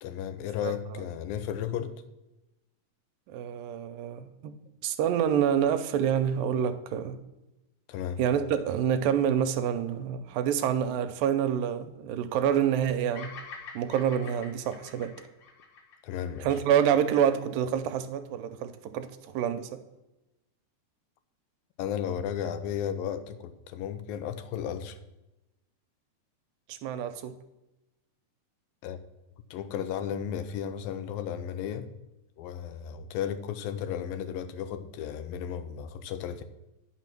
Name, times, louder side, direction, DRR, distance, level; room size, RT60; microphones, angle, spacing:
voice 1, 0.0-2.0 7.9-8.2 16.0-16.5 21.8-25.0 28.8-29.0 29.5-31.9 32.4-36.4, left 9 dB, 80° left, 2.4 m, -34 dB
voice 2, 3.3-4.5 4.8-7.2 8.2-13.3 13.7-15.1 16.4-19.1 19.3-19.7 26.7-27.3, right 9 dB, 85° right, 2.4 m, -27 dB
Bird vocalization bird call bird song, 13.1-17.4, left 5 dB, 65° left, 1.5 m, -47 dB
9.7 x 5.9 x 5.9 m
omnidirectional pair, 4.1 m